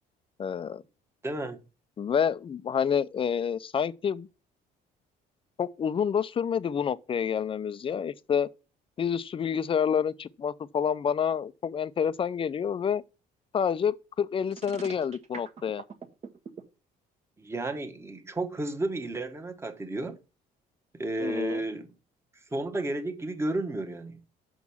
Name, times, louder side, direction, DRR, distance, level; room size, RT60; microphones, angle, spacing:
voice 1, 0.4-0.8 2.0-4.3 5.6-8.5 9.0-13.0 13.5-15.8 21.2-21.6, left 7 dB, 30° left, 0.5 m, -28 dB
voice 2, 1.2-1.6 17.4-20.2 20.9-21.9 22.5-24.2, right 2 dB, 15° right, 1.3 m, -32 dB
sound 1, 14.5-16.6, right 5 dB, 40° right, 1.3 m, -42 dB
6.2 x 6.0 x 7.1 m
cardioid pair, 110°, 17 cm